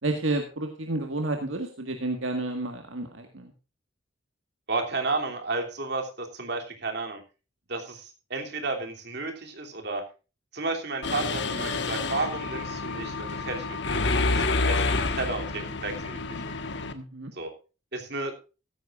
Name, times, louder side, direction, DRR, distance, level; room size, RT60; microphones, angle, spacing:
voice 1, 0.0-3.5 16.9-17.3, right 2 dB, 70° right, 4 dB, 1.8 m, -30 dB
voice 2, 4.7-7.2 7.7-10.0 10.5-16.4 17.3-17.5 17.9-18.3, right 3 dB, 55° right, 3 dB, 3.0 m, -32 dB
Mechanisms, 11.0-16.9, left 3 dB, 60° left, 1.5 m, -28 dB
15.5 x 13.5 x 2.5 m, 0.32 s
head